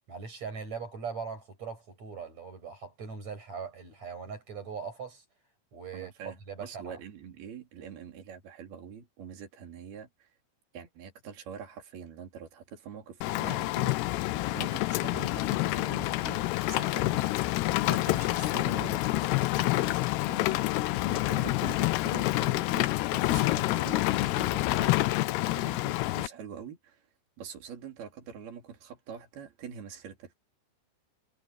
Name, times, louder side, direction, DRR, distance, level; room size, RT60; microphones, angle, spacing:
voice 1, 0.1-5.2 5.7-7.0, right 6 dB, 35° right, 8.0 m, -40 dB
voice 2, 5.9-10.3 10.7-14.0 14.5-17.2 17.8-25.0 25.5-27.0 27.4-30.4, right 7 dB, 55° right, 5.6 m, -45 dB
Rain, 13.2-26.3, left 18 dB, 80° left, 2.4 m, -28 dB
omnidirectional pair, 5.5 m